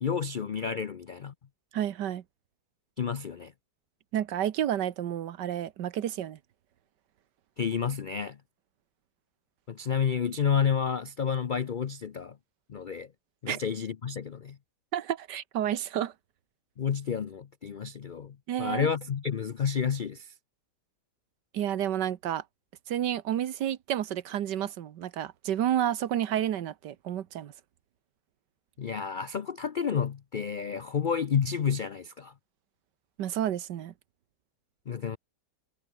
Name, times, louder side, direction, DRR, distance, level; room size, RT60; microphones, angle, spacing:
voice 1, 0.0-1.3 3.0-3.5 7.6-8.4 9.7-12.4 12.7-13.1 13.4-14.6 16.8-20.3 28.8-32.3 34.9-35.2, left 7 dB, 80° left, 0.4 m, -30 dB
voice 2, 1.7-2.2 4.1-6.4 13.5-13.6 14.9-16.1 18.5-18.9 21.5-22.4 22.9-27.5 33.2-33.9, right 11 dB, 85° right, 1.6 m, -30 dB
omnidirectional pair, 1.8 m